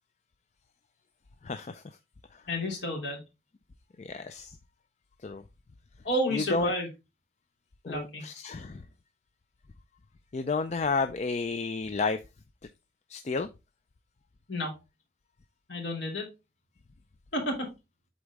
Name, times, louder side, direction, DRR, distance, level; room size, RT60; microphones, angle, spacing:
voice 1, 1.4-1.8 2.3-2.4 4.0-4.6 5.2-5.4 6.3-6.7 7.8-8.9 10.3-12.2 13.1-13.5, left 4 dB, 35° left, 0.4 m, -31 dB
voice 2, 2.5-3.2 6.0-6.9 7.8-8.3 14.5-14.7 15.7-16.3 17.3-17.7, left 1 dB, 75° left, 2.9 m, -31 dB
8.3 x 4.0 x 3.4 m
head